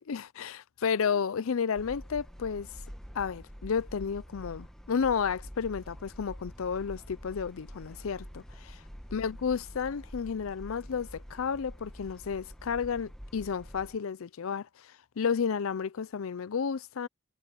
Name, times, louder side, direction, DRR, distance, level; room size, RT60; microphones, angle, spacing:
voice 1, 0.0-2.7 3.1-8.8 9.1-17.1, left 6 dB, 80° left, 0.5 m, -32 dB
sound 1, 1.8-14.0, equal, ahead, 1.4 m, -47 dB
head